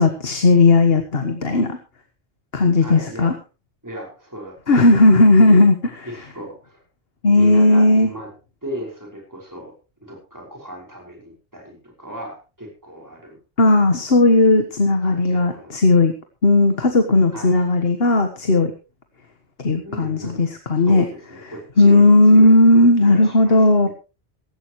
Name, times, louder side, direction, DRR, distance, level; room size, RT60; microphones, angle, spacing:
voice 1, 0.0-1.8 2.5-3.3 4.7-5.7 7.2-8.1 13.6-16.1 16.4-18.7 19.6-21.0 21.8-23.9, left 2 dB, 60° left, 6 dB, 1.7 m, -15 dB
voice 2, 2.8-3.3 3.8-5.0 5.3-5.6 6.0-6.8 7.4-8.3 8.6-9.7 10.0-13.4 15.0-15.8 17.3-17.6 19.8-20.4 20.9-22.6 23.0-23.9, equal, 15° right, 0 dB, 5.6 m, -36 dB
16.5 x 16.0 x 3.1 m, 0.31 s
omnidirectional pair, 1.1 m